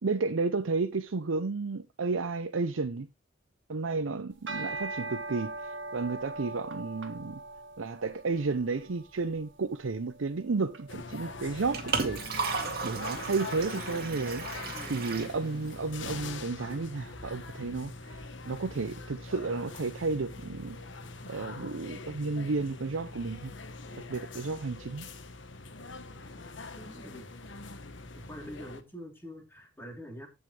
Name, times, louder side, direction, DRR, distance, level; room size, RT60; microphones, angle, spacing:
voice 1, 0.0-3.1 3.7-7.4 7.8-12.2 12.8-14.5 14.9-20.8 21.3-23.5 23.9-25.1, right 3 dB, 90° right, 0.7 m, -32 dB
sound 1, 4.3-13.7, right 2 dB, 65° right, 1.6 m, -42 dB
sound 2, 10.9-28.8, left 3 dB, 65° left, 1.2 m, -43 dB
Liquid, 11.4-16.4, right 4 dB, 50° right, 2.0 m, -36 dB
voice 2, 26.8-27.3 28.3-30.3, equal, 10° left, 3.4 m, -45 dB
15.5 x 5.6 x 3.3 m
head